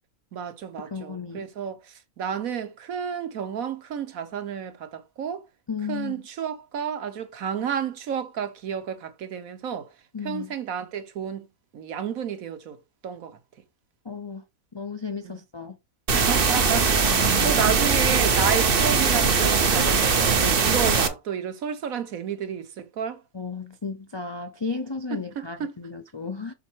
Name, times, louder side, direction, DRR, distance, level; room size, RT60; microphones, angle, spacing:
voice 1, 0.3-5.4 5.9-9.9 10.2-11.5 11.7-12.8 13.0-13.4 15.2-15.3 16.1-23.2 25.4-25.7, right 7 dB, 70° right, 1.4 m, -31 dB
voice 2, 0.9-1.4 5.7-6.2 10.1-10.5 14.0-14.4 14.7-15.8 17.1-17.8 23.3-26.5, left 5 dB, 40° left, 0.3 m, -34 dB
sound 1, 16.1-21.1, right 5 dB, 45° right, 1.1 m, -21 dB
6.2 x 4.1 x 4.5 m
omnidirectional pair, 1.5 m